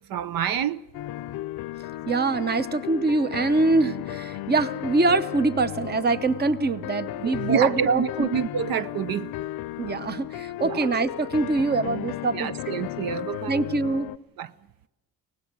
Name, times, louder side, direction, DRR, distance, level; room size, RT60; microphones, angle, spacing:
voice 1, 0.1-0.8 7.2-9.3 10.6-10.9 12.3-13.7 14.4-14.5, right 8 dB, 70° right, 0.8 m, -28 dB
sound 1, 0.9-14.2, left 15 dB, 85° left, 0.6 m, -34 dB
voice 2, 2.1-8.3 9.8-12.5 13.5-14.1, right 3 dB, 25° right, 0.9 m, -24 dB
24.5 x 19.0 x 6.2 m
cardioid pair, 140°, 36 cm